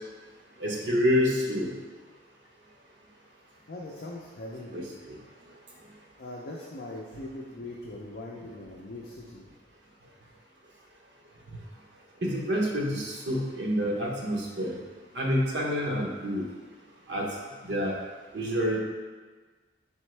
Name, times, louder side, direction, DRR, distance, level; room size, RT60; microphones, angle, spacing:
voice 1, 0.6-1.7 4.7-5.2 12.2-14.8 15.1-16.4 17.1-17.3 17.6-17.9 18.3-18.8, equal, 70° right, -2 dB, 0.8 m, -27 dB
voice 2, 3.7-4.9 6.2-9.5, left 1 dB, 55° left, -3 dB, 0.5 m, -41 dB
4.2 x 3.6 x 3.2 m, 1.4 s
head